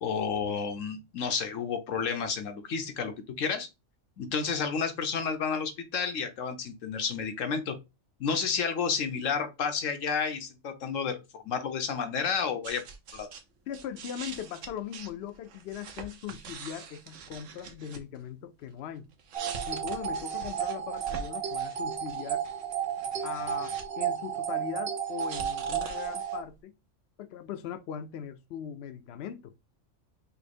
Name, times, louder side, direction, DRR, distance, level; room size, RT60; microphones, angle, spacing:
voice 1, 0.0-3.7 4.2-7.8 8.2-11.2 11.4-12.8 13.1-13.3, left 6 dB, 85° left, 1.3 m, -31 dB
sound 1, 12.6-13.4 13.7-18.2 19.1-23.9 24.1-26.5, right 5 dB, 75° right, 1.1 m, -44 dB
voice 2, 13.7-19.1 19.7-22.5 23.2-26.7 27.2-29.5, left 9 dB, 65° left, 0.7 m, -40 dB
sound 2, 19.3-26.4, right 8 dB, 55° right, 0.9 m, -33 dB
5.5 x 2.0 x 4.2 m
omnidirectional pair, 1.3 m